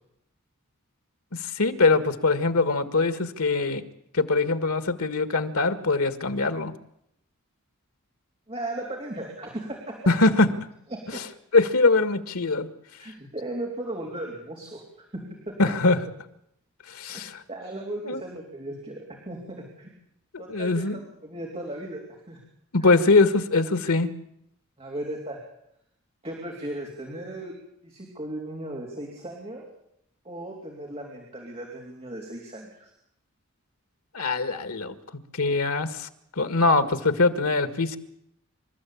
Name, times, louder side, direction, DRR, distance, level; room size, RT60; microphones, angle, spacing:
voice 1, 1.3-3.8 4.1-6.7 10.1-10.5 11.1-11.2 11.5-12.7 15.6-16.0 16.9-17.4 18.0-18.2 20.3-21.0 22.7-24.1 34.1-34.9 35.3-36.1 36.3-38.0, left 3 dB, 90° left, 11 dB, 1.7 m, -22 dB
voice 2, 8.5-10.0 10.9-11.2 13.0-14.8 15.1-15.5 17.1-17.2 17.5-19.9 20.4-22.0 22.3-22.4 22.8-22.9 24.8-25.4 26.2-27.5 27.8-29.7 30.2-32.9, right 1 dB, 30° right, -1 dB, 3.6 m, -36 dB
27.0 x 13.5 x 8.6 m, 0.77 s
head